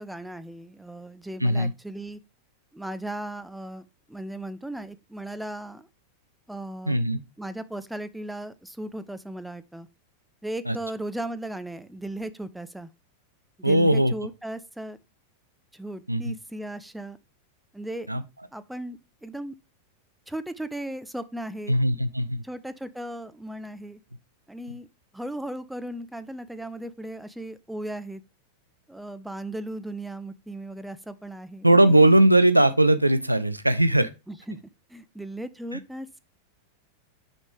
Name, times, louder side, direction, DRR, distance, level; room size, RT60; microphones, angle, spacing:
voice 1, 0.0-2.2 2.7-5.9 6.5-7.0 7.4-9.9 10.4-12.9 13.6-15.0 15.7-17.2 17.7-18.1 18.5-19.6 20.3-21.7 22.4-24.0 24.5-24.9 25.1-28.2 28.9-32.1 34.3-34.6 34.9-36.2, right 1 dB, 5° right, 0.4 m, -36 dB
voice 2, 1.4-1.7 6.9-7.2 10.7-10.8 13.6-14.1 16.1-16.3 18.1-18.2 21.7-22.4 31.6-34.1 35.7-35.8, right 1 dB, 85° right, 0.4 m, -19 dB
6.2 x 5.0 x 3.4 m
figure-of-eight pair, 90°, 0 cm